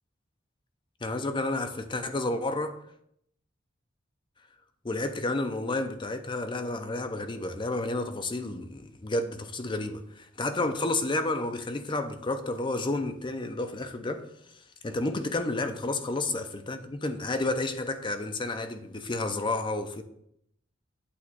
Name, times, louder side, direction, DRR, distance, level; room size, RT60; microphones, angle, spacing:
voice 1, 1.0-2.8 4.8-14.2 14.8-20.0, left 2 dB, 25° left, 0.6 m, -31 dB
8.4 x 3.1 x 6.1 m
head